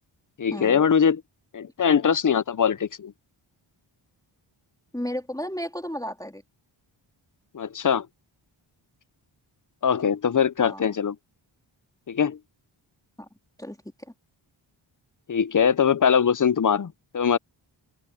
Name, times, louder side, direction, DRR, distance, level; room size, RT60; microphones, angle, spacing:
voice 1, 0.4-1.2 1.5-3.1 7.5-8.1 9.8-11.1 12.1-12.4 15.3-17.4, left 7 dB, 40° left, 0.8 m, -22 dB
voice 2, 4.9-6.4 10.6-10.8 13.2-13.3 13.6-13.8, equal, 5° left, 3.5 m, -33 dB
cardioid pair, 45°, 50 cm